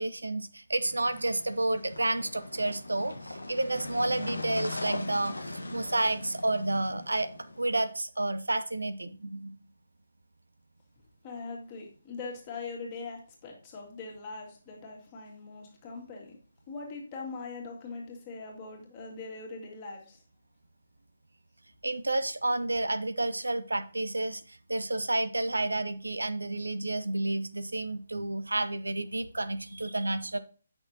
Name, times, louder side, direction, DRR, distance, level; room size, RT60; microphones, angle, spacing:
voice 1, 0.0-7.3 7.6-9.5 21.8-30.4, right 2 dB, 70° right, 12 dB, 0.6 m, -30 dB
sound 1, 0.9-7.9, left 2 dB, 75° left, 1.2 m, -40 dB
voice 2, 11.2-16.4 16.7-20.2, left 4 dB, 25° left, -1 dB, 2.2 m, -41 dB
8.6 x 6.1 x 2.8 m, 0.38 s
figure-of-eight pair, 145°, 0 cm